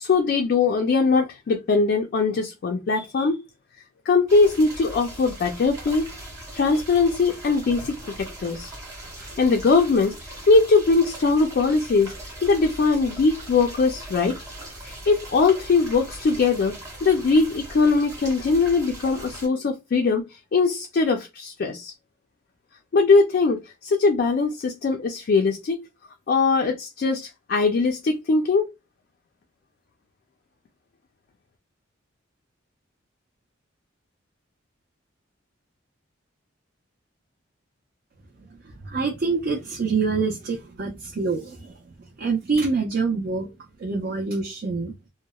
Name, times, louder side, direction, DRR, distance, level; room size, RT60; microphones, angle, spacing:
voice 1, 0.0-3.4 4.1-6.0 6.5-8.7 9.2-12.1 12.4-14.4 14.8-21.9 22.9-25.8 26.3-28.7, left 4 dB, 50° left, 0.3 m, -21 dB
sound 1, 4.3-19.5, right 1 dB, 15° right, 0.8 m, -40 dB
voice 2, 38.5-43.5 43.8-44.9, right 4 dB, 50° right, 0.4 m, -26 dB
2.8 x 2.0 x 2.2 m
head